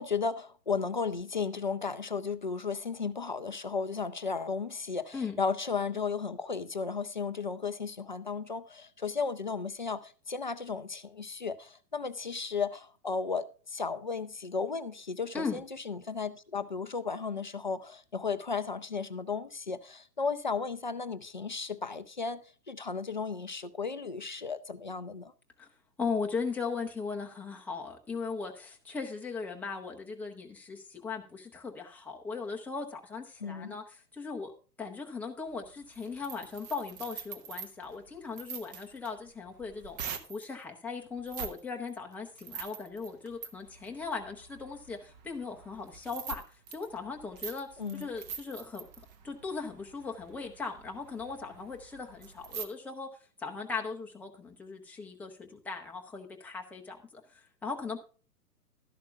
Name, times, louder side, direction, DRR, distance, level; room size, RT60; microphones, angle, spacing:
voice 1, 0.0-25.3 33.4-33.8 47.8-48.1, left 5 dB, 35° left, 0.4 m, -34 dB
voice 2, 26.0-34.5 34.8-40.0 40.3-46.4 46.7-47.7 47.9-48.9 49.2-53.1 53.4-58.0, left 4 dB, 5° left, 0.7 m, -38 dB
sound 1, 35.5-40.5 41.2-41.6 41.9-52.7, right 7 dB, 25° right, 1.0 m, -45 dB
12.5 x 11.0 x 2.3 m
figure-of-eight pair, 120°, 49 cm